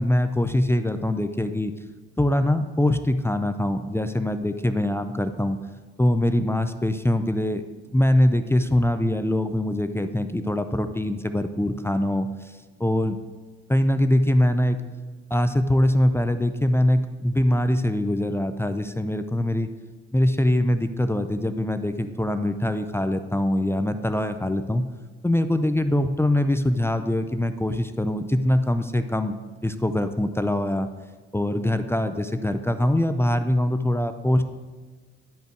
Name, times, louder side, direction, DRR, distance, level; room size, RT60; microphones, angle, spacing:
voice 1, 0.0-1.7 2.2-5.6 6.0-7.6 7.9-12.5 12.8-13.2 13.7-14.8 15.3-19.7 20.1-24.8 25.2-29.4 29.6-30.9 31.3-34.4, left 1 dB, 10° left, 9 dB, 0.6 m, -23 dB
10.5 x 5.3 x 4.5 m, 1.4 s
hypercardioid pair, 50°, 30 cm